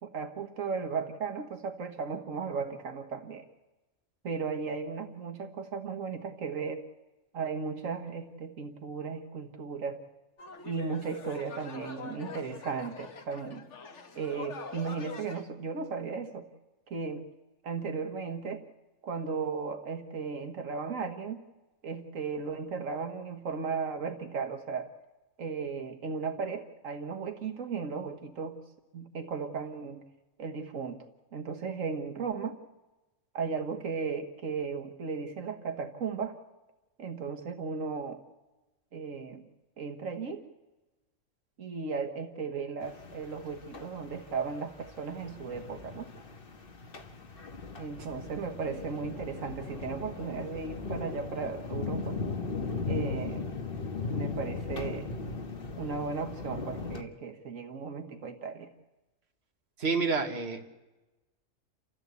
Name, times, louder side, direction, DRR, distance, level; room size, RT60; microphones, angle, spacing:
voice 1, 0.0-3.4 4.2-6.8 7.3-10.0 10.6-13.7 14.2-16.5 16.9-17.2 17.6-18.6 19.0-21.4 21.8-24.9 25.4-28.6 28.9-30.0 30.4-31.0 31.3-32.6 33.3-36.4 37.0-38.2 38.9-39.4 39.8-40.4 41.6-46.1 47.8-52.2 52.9-53.5 54.1-55.1 55.8-58.7, right 5 dB, 85° right, 6 dB, 1.8 m, -36 dB
sound 1, 10.4-15.4, left 5 dB, 65° left, 1.7 m, -45 dB
sound 2, 42.8-57.0, left 4 dB, 45° left, 1.6 m, -38 dB
voice 2, 59.8-60.6, right 4 dB, 55° right, 4 dB, 2.0 m, -28 dB
29.5 x 14.0 x 8.2 m, 1.1 s
omnidirectional pair, 1.3 m